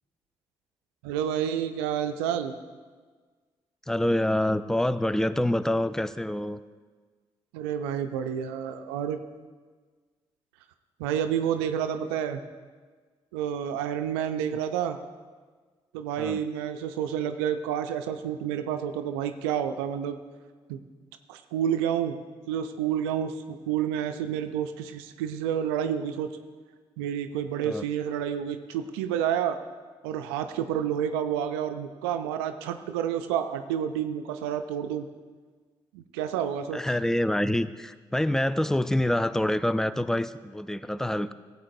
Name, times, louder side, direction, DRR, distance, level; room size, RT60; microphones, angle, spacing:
voice 1, 1.0-2.5 7.5-9.2 11.0-12.4 13.3-15.0 15.9-20.2 20.7-20.8 21.3-22.1 22.5-26.3 27.0-29.6 30.0-35.1 35.9-36.8, right 9 dB, 85° right, 9 dB, 0.4 m, -29 dB
voice 2, 3.9-6.6 16.2-16.4 27.6-27.8 36.7-41.3, left 1 dB, 5° left, 14 dB, 0.4 m, -26 dB
15.0 x 8.2 x 2.6 m, 1.5 s
hypercardioid pair, 40°, 13 cm